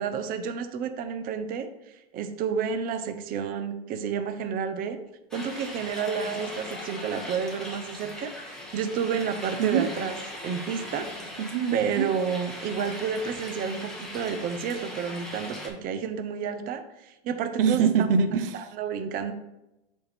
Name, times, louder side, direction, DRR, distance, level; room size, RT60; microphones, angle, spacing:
voice 1, 0.0-1.7 2.1-5.0 5.3-10.1 10.4-11.1 11.7-17.8 18.5-19.3, right 6 dB, 30° right, 9 dB, 0.6 m, -30 dB
Growling, 4.9-5.2 5.9-8.0 8.5-10.3 10.6-12.9, left 5 dB, 40° left, 0.9 m, -49 dB
sound 1, 5.3-15.7, left 1 dB, ahead, 1.3 m, -40 dB
voice 2, 9.6-9.9 11.4-12.1 17.6-18.7, right 6 dB, 70° right, 10 dB, 0.6 m, -24 dB
6.8 x 4.2 x 3.4 m, 0.91 s
hypercardioid pair, 105°, 29 cm